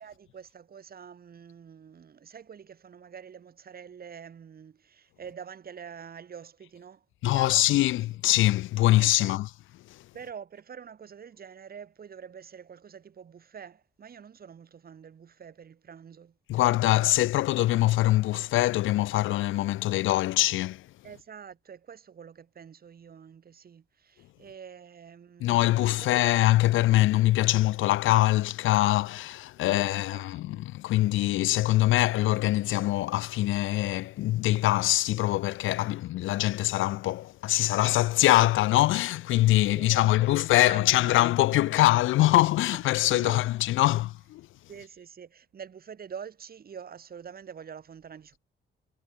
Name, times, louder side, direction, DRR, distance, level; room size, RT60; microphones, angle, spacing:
voice 1, 0.0-7.0 7.3-7.8 8.9-9.4 10.1-16.3 21.0-26.2 29.6-30.7 35.8-36.0 36.4-36.5 39.6-41.8 42.6-44.0 44.7-48.4, right 7 dB, 50° right, 4.5 m, -46 dB
voice 2, 7.2-9.5 9.9-10.0 16.5-20.9 25.4-44.5, left 16 dB, 85° left, 0.9 m, -23 dB
cardioid pair, 90°, 20 cm